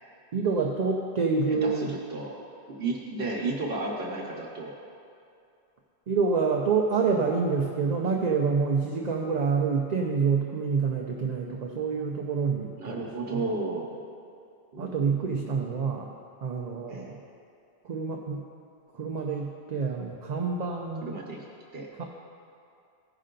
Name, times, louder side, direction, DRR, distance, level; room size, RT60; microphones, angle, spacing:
voice 1, 0.3-1.9 6.1-13.5 14.8-17.2 17.8-18.4 18.9-21.2 22.0-22.1, right 5 dB, 50° right, 1 dB, 0.6 m, -27 dB
voice 2, 1.5-2.3 2.7-4.7 12.8-14.0 14.7-15.8 16.9-17.1 21.0-21.4 21.7-22.0, right 2 dB, 70° right, -1 dB, 1.1 m, -34 dB
15.0 x 5.5 x 3.8 m, 2.5 s
omnidirectional pair, 1.1 m